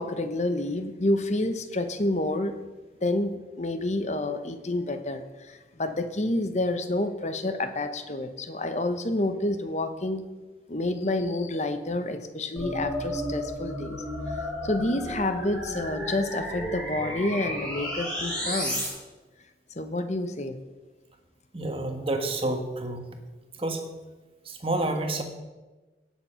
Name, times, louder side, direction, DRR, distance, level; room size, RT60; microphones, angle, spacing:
voice 1, 0.0-2.5 3.0-10.2 10.7-14.0 14.3-18.8 19.8-20.6, left 2 dB, 40° left, 9 dB, 1.0 m, -29 dB
sound 1, 12.6-18.9, equal, 5° left, 5.0 m, -32 dB
voice 2, 21.5-23.1 23.5-23.9 24.4-25.2, right 2 dB, 30° right, 5 dB, 1.5 m, -29 dB
17.0 x 7.4 x 5.7 m, 1.2 s
head